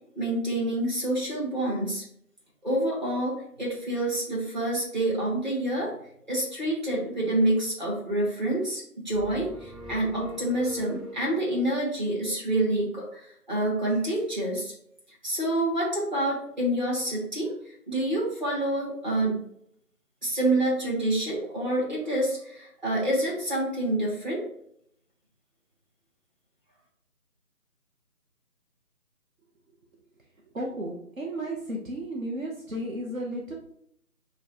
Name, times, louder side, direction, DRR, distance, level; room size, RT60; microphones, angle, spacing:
voice 1, 0.1-2.0 2.6-5.9 6.3-14.7 15.2-19.4 20.2-24.4, right 1 dB, 30° right, -7 dB, 1.3 m, -27 dB
sound 1, 9.1-11.5, right 1 dB, ahead, 0.4 m, -42 dB
voice 2, 30.5-33.5, right 1 dB, 60° right, -2 dB, 0.9 m, -33 dB
6.9 x 2.3 x 2.8 m, 0.71 s
figure-of-eight pair, 180°, 46 cm